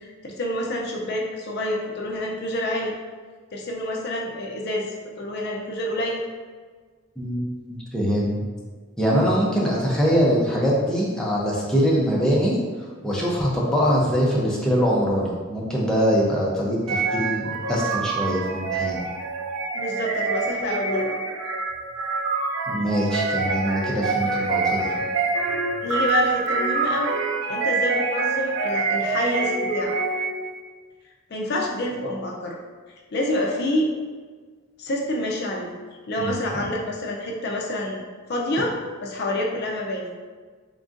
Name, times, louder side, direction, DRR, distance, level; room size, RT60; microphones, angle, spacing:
voice 1, 0.0-2.9 3.5-6.2 9.6-9.7 19.7-21.2 25.8-27.1 27.5-30.0 31.3-32.6 33.1-33.9 34.8-35.7 36.1-38.0 38.3-40.1, left 1 dB, 50° left, 0 dB, 0.5 m, -27 dB
voice 2, 7.2-8.4 9.0-12.6 13.0-19.0 22.7-25.0 36.2-36.6, equal, 5° left, -5 dB, 0.6 m, -23 dB
sound 1, 16.9-30.5, right 4 dB, 75° right, 0.5 m, -26 dB
3.7 x 3.6 x 2.5 m, 1.5 s
head